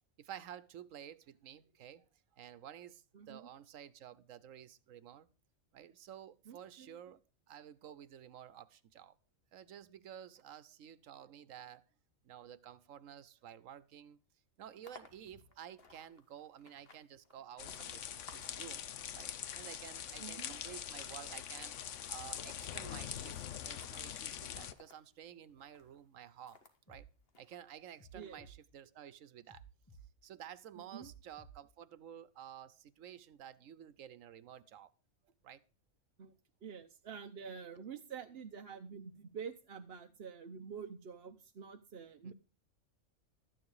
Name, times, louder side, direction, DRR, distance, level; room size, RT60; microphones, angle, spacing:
voice 1, 0.2-2.0 2.4-5.3 5.7-7.2 7.5-9.2 9.5-11.9 12.2-14.2 14.6-18.9 19.1-21.8 22.1-23.4 23.6-26.6 26.9-27.1 27.4-29.6 30.2-34.9 35.4-35.6 42.2-42.3, right 10 dB, 90° right, 1.2 m, -52 dB
voice 2, 3.1-3.5 6.5-7.0 20.2-20.6 28.1-28.5 30.8-31.1 36.2-36.3 36.6-42.3, right 6 dB, 55° right, 1.0 m, -48 dB
sound 1, 14.6-26.8 27.3-28.4, left 3 dB, 50° left, 1.8 m, -63 dB
sound 2, 17.6-24.7, left 9 dB, 70° left, 1.1 m, -43 dB
sound 3, 26.9-27.1 28.0-28.6 29.5-30.1 31.0-31.6, right 4 dB, 15° left, 1.6 m, -56 dB
13.0 x 9.3 x 4.8 m
omnidirectional pair, 1.3 m